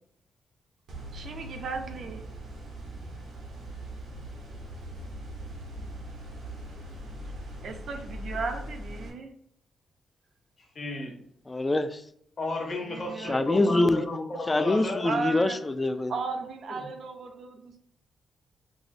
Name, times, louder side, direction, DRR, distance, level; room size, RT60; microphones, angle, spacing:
sound 1, 0.9-9.1, right 1 dB, 85° right, 0.9 m, -40 dB
voice 1, 1.1-2.2 7.6-9.3 12.8-13.8 15.0-15.6 16.1-17.8, right 4 dB, 70° right, 5 dB, 0.6 m, -35 dB
voice 2, 10.7-11.2 12.4-15.1, left 2 dB, 55° left, 0 dB, 1.1 m, -34 dB
voice 3, 11.5-12.0 13.3-14.0 14.5-16.1, left 2 dB, 25° left, 10 dB, 0.3 m, -24 dB
4.6 x 2.0 x 2.6 m, 0.67 s
cardioid pair, 70°, 0 cm